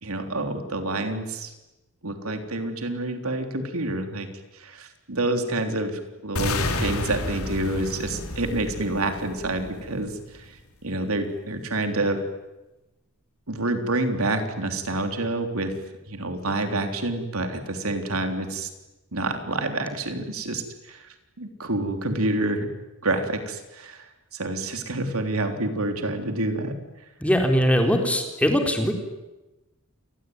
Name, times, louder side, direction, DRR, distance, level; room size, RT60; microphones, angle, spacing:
voice 1, 0.0-1.5 2.0-4.3 4.5-12.2 13.5-15.8 16.1-18.7 19.1-22.7 23.0-26.7, right 2 dB, 80° right, 6 dB, 3.5 m, -28 dB
sound 1, 6.4-10.4, left 2 dB, 80° left, 3.8 m, -30 dB
voice 2, 27.2-28.9, equal, 5° left, 3 dB, 4.0 m, -21 dB
28.0 x 21.5 x 9.6 m, 1.0 s
head